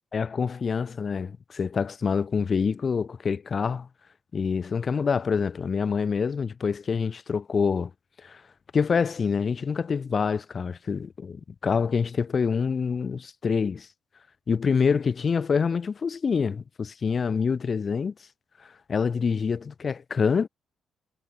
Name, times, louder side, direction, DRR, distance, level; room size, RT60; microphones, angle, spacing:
voice 1, 0.1-3.9 4.3-7.9 8.2-8.4 8.7-13.9 14.5-18.1 18.9-20.5, left 5 dB, 40° left, 1.3 m, -26 dB
cardioid pair, 90°, 0 cm